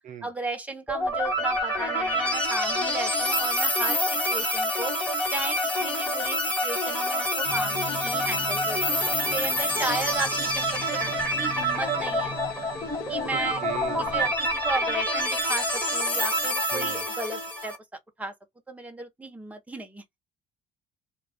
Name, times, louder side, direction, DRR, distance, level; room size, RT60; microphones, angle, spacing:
voice 1, 0.2-4.9 5.3-12.4 13.1-13.6 14.0-17.8 18.2-18.3 18.7-20.2, right 2 dB, 10° right, 0.8 m, -35 dB
sound 1, 0.9-17.8, equal, 10° left, 1.2 m, -27 dB
sound 2, 7.4-14.3, left 5 dB, 60° left, 0.8 m, -41 dB
voice 2, 13.3-14.2 16.7-17.0, right 9 dB, 50° right, 0.5 m, -39 dB
2.3 x 2.3 x 3.3 m
cardioid pair, 110°, 17 cm